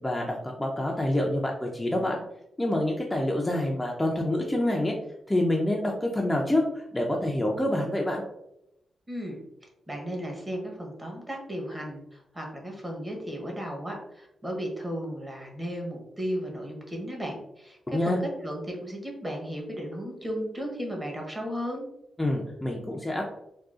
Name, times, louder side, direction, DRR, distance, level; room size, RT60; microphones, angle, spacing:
voice 1, 0.0-2.2 2.6-4.9 5.3-8.2 17.9-18.2 22.2-23.2, left 1 dB, 15° left, -1 dB, 0.4 m, -27 dB
voice 2, 9.1-21.9, equal, 20° right, 0 dB, 0.9 m, -35 dB
3.7 x 2.3 x 2.4 m, 0.81 s
cardioid pair, 85°, 0 cm